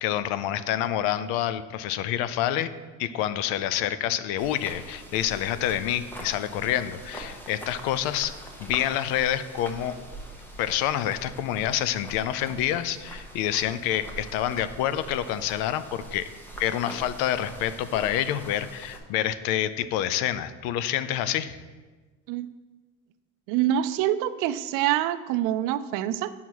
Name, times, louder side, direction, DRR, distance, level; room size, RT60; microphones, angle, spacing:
voice 1, 0.0-2.7 3.0-8.3 8.6-10.0 10.6-16.3 16.6-21.5, left 11 dB, 90° left, 14 dB, 0.6 m, -27 dB
sound 1, 4.4-19.0, right 1 dB, 5° left, 0.9 m, -43 dB
voice 2, 23.5-26.3, right 12 dB, 70° right, 12 dB, 0.5 m, -26 dB
9.2 x 5.6 x 4.7 m, 1.3 s
cardioid pair, 150°, 33 cm